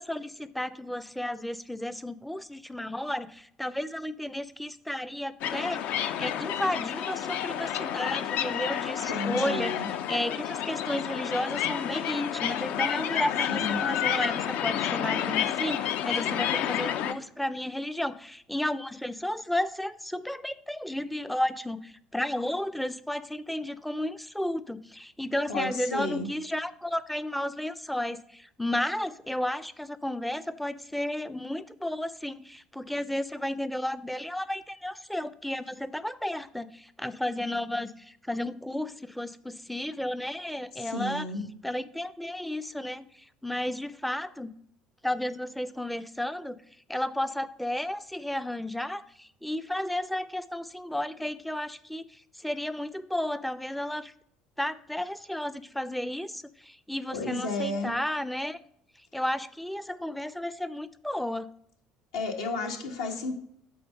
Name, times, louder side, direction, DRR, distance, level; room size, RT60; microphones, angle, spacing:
voice 1, 0.0-41.3 41.6-44.5 45.0-46.6 46.9-54.1 54.6-58.6 59.1-61.5, left 1 dB, ahead, 15 dB, 0.5 m, -33 dB
sound 1, 5.4-17.1, left 10 dB, 50° left, 0.5 m, -30 dB
voice 2, 9.1-9.9 13.5-13.8 25.5-26.3 40.8-41.4 57.1-57.9 62.1-63.3, left 2 dB, 70° left, 3 dB, 1.4 m, -32 dB
8.5 x 3.8 x 5.4 m, 0.70 s
figure-of-eight pair, 60°, 3 cm